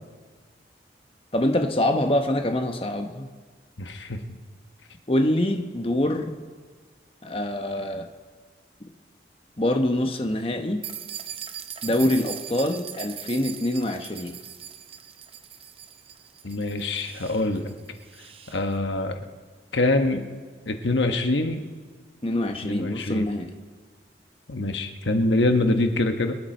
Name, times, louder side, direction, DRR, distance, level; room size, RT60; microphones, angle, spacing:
voice 1, 1.3-3.3 5.1-6.4 7.2-8.1 9.6-10.8 11.8-14.3 22.2-23.5, left 1 dB, 30° left, 5 dB, 0.9 m, -25 dB
voice 2, 3.8-4.2 16.4-17.7 18.5-19.2 19.7-20.2 20.7-21.6 22.6-23.3 24.5-26.4, left 2 dB, 90° left, 6 dB, 1.1 m, -24 dB
sound 1, 10.8-18.6, right 9 dB, 30° right, 0.7 m, -40 dB
24.0 x 10.5 x 4.4 m, 1.5 s
head